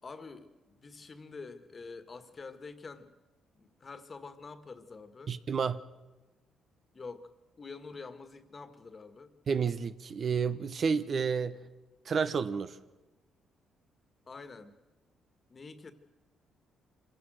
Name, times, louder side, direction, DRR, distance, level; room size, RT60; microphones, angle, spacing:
voice 1, 0.0-3.1 3.6-5.3 6.9-7.3 7.6-9.3 11.5-11.7 14.3-14.8 15.5-15.9, left 4 dB, 35° left, 1.8 m, -47 dB
voice 2, 5.3-5.8 9.5-11.6 12.1-12.8, right 6 dB, 50° right, 0.9 m, -30 dB
25.5 x 16.0 x 6.4 m
cardioid pair, 90°, 0 cm